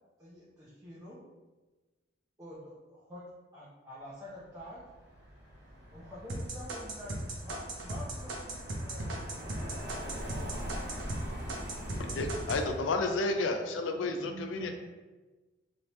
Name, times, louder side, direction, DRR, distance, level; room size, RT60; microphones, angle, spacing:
voice 1, 0.2-1.2 2.4-4.8 5.9-9.8, equal, 15° right, -9 dB, 0.6 m, -48 dB
Car passing by, 4.6-13.1, equal, 60° right, 1.0 m, -43 dB
sound 1, 6.3-11.2 11.5-12.6, right 2 dB, 90° right, 0.7 m, -37 dB
voice 2, 12.0-14.7, left 3 dB, 80° left, 5 dB, 0.4 m, -31 dB
voice 3, 13.9-14.7, right 3 dB, 35° right, -9 dB, 1.5 m, -46 dB
3.3 x 2.8 x 3.0 m, 1.2 s
head